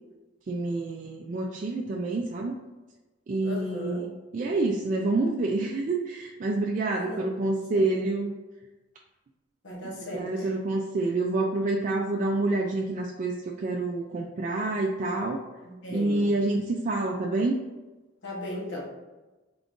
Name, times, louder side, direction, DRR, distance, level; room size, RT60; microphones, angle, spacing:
voice 1, 0.5-2.6 3.3-8.3 9.8-15.4 15.9-17.6, right 2 dB, 45° right, 0 dB, 0.3 m, -28 dB
voice 2, 3.4-4.1 6.9-7.4 7.7-7.8 9.6-10.5 15.6-16.3 18.2-18.9, left 1 dB, 80° left, -3 dB, 1.1 m, -37 dB
3.8 x 2.5 x 3.5 m, 1.1 s
head